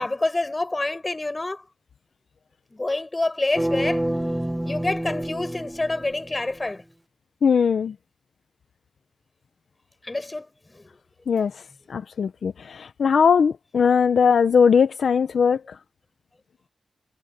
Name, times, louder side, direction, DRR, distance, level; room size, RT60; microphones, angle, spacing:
voice 1, 0.0-1.7 2.7-4.0 4.6-6.8 10.0-10.9, left 2 dB, 30° left, 5.5 m, -27 dB
sound 1, 3.6-6.6, right 1 dB, 10° right, 1.3 m, -28 dB
voice 2, 7.4-7.9 11.3-11.6 11.9-15.8, left 6 dB, 80° left, 0.8 m, -20 dB
cardioid pair, 50°, 0 cm